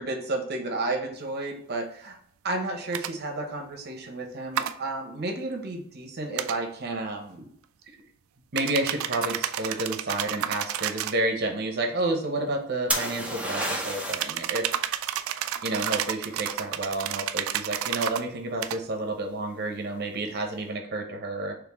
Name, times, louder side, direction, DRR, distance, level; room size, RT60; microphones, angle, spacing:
voice 1, 0.0-2.2 2.4-7.5 8.5-14.7 15.6-21.5, right 2 dB, 55° right, 3 dB, 0.8 m, -31 dB
sound 1, 2.9-3.1 4.5-4.7 6.4-6.6 8.6-11.2 14.1-18.2 18.6-18.8, right 10 dB, 85° right, 0.3 m, -31 dB
sound 2, 12.9-14.4 18.0-18.5, right 1 dB, 5° right, 0.7 m, -30 dB
4.2 x 3.1 x 3.0 m, 0.67 s
head